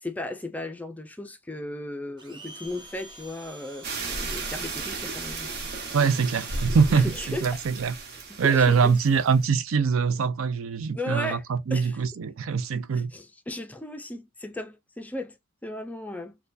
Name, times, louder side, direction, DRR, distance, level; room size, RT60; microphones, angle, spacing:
voice 1, 0.0-5.9 6.9-7.5 8.1-8.9 10.9-11.4 11.7-12.0 12.9-16.4, left 1 dB, 10° left, 0.4 m, -36 dB
Domestic sounds home sounds, 2.2-7.3, right 2 dB, 20° right, 0.7 m, -47 dB
sound 1, 2.7-3.3 3.8-5.9 6.2-6.3 6.5-8.0, equal, 70° right, 1.4 m, -37 dB
sound 2, 3.8-9.4, right 4 dB, 50° right, 0.8 m, -36 dB
voice 2, 5.9-7.9 8.4-13.1, right 5 dB, 90° right, 0.5 m, -23 dB
4.3 x 2.2 x 2.5 m
head